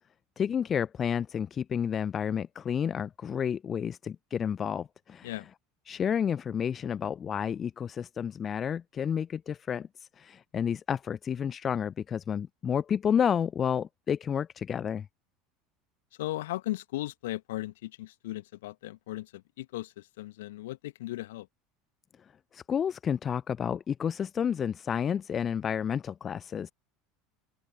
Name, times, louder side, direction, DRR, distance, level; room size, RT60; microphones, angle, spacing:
voice 1, 0.4-5.3 5.9-9.9 10.2-15.1 22.5-26.7, left 8 dB, 30° left, 0.5 m, -30 dB
voice 2, 16.2-21.5, left 16 dB, 65° left, 1.3 m, -37 dB
open air
figure-of-eight pair, 70°, 0 cm